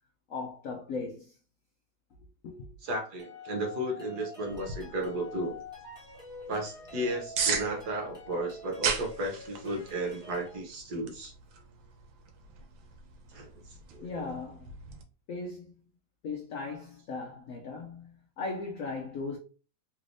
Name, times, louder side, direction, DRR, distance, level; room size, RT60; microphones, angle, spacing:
voice 1, 0.3-1.4 2.4-2.7 14.0-14.7 15.3-15.7 16.2-19.4, left 4 dB, 75° left, 0.7 m, -38 dB
voice 2, 2.8-5.6 6.5-11.3 13.3-13.5 14.0-14.3, right 1 dB, 60° right, 1.3 m, -34 dB
sound 1, 3.2-10.6, left 4 dB, 5° right, 1.1 m, -47 dB
sound 2, 4.5-15.0, right 6 dB, 85° right, 1.4 m, -39 dB
3.4 x 3.2 x 2.5 m
omnidirectional pair, 2.1 m